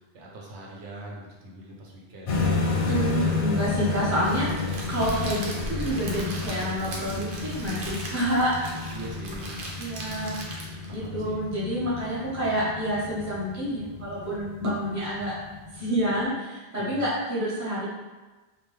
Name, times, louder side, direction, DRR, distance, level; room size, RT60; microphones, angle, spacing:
voice 1, 0.0-2.5 8.9-9.6 10.9-11.4 16.8-17.0, right 2 dB, 85° right, -3 dB, 0.9 m, -42 dB
sound 1, 2.3-16.2, left 4 dB, 60° left, 0.6 m, -32 dB
voice 2, 2.8-8.5 9.8-10.4 10.9-15.3 15.7-17.9, equal, 15° right, -8 dB, 0.8 m, -28 dB
Crackle, 4.2-10.9, right 1 dB, 60° right, 0.7 m, -38 dB
2.5 x 2.2 x 3.0 m, 1.2 s
omnidirectional pair, 1.1 m